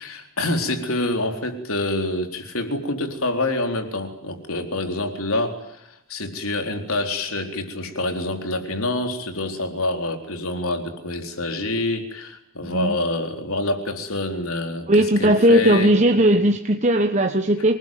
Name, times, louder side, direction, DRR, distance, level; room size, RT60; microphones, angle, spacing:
voice 1, 0.0-15.9, left 2 dB, 75° left, 5 dB, 4.1 m, -27 dB
voice 2, 12.6-13.0 14.9-17.8, right 1 dB, 30° right, 5 dB, 1.2 m, -17 dB
26.5 x 20.0 x 9.5 m, 0.75 s
head